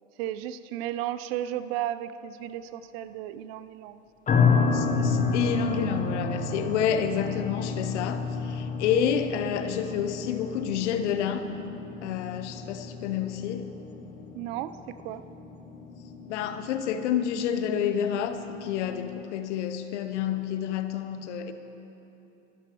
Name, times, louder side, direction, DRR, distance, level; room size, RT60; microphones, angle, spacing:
voice 1, 0.2-4.0 14.3-15.2, right 12 dB, 50° right, 13 dB, 0.7 m, -34 dB
sound 1, 4.3-19.2, left 4 dB, 20° left, 0.9 m, -31 dB
voice 2, 4.7-11.5 12.0-13.7 16.2-21.5, left 8 dB, 60° left, 9 dB, 1.0 m, -29 dB
25.5 x 13.0 x 3.0 m, 3.0 s
hypercardioid pair, 95°, 39 cm